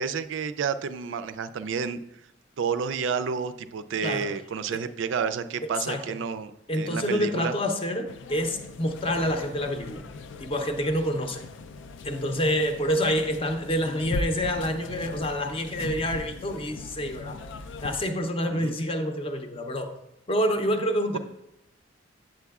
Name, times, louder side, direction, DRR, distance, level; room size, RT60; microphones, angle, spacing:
voice 1, 0.0-2.0 2.6-7.5 18.5-18.7 21.1-21.2, right 6 dB, 70° right, 12 dB, 0.4 m, -30 dB
voice 2, 6.7-10.0 10.4-11.4 12.0-17.4 17.8-19.9 20.3-21.2, equal, 30° left, 6 dB, 0.6 m, -27 dB
sound 1, 8.1-18.0, left 2 dB, 70° left, 0.4 m, -39 dB
8.1 x 7.6 x 2.3 m, 0.84 s
head